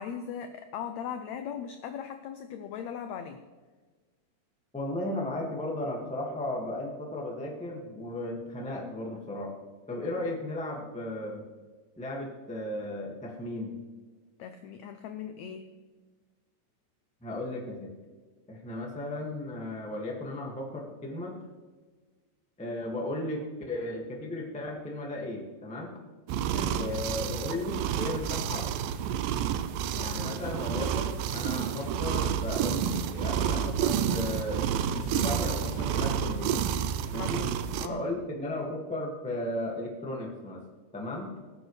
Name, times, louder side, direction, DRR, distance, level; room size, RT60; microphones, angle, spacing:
voice 1, 0.0-3.4 14.4-15.7 26.5-26.9 29.9-30.6 37.1-37.5 37.8-38.0, left 7 dB, 90° left, 7 dB, 1.5 m, -39 dB
voice 2, 4.7-9.5 9.9-11.4 12.0-13.7 17.2-17.9 18.5-21.4 22.6-26.0 26.7-28.7 30.0-34.6 35.0-36.6 37.1-37.5 37.9-40.6 40.9-41.3, left 1 dB, 10° left, -1 dB, 0.3 m, -35 dB
sound 1, 26.3-37.9, right 8 dB, 85° right, 2.3 m, -30 dB
sound 2, 30.4-31.0 31.3-32.4 32.7-33.8 34.1-35.2 35.5-35.9, left 4 dB, 70° left, 2.2 m, -44 dB
19.5 x 8.6 x 3.2 m, 1.4 s
omnidirectional pair, 3.9 m